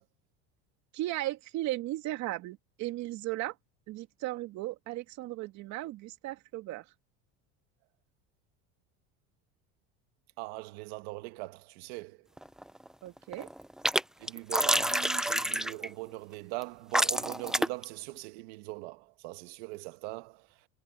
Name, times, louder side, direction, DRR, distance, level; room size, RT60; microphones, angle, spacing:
voice 1, 0.9-3.5 3.9-6.8 13.0-13.5, right 16 dB, 65° right, 2.6 m, -36 dB
voice 2, 10.4-12.2 14.2-20.5, right 22 dB, 85° right, 1.5 m, -41 dB
sound 1, 12.4-12.9 13.2-14.0 14.3-15.9 16.6-16.7 16.9-17.8, right 1 dB, ahead, 0.6 m, -28 dB
cardioid pair, 125°, 30 cm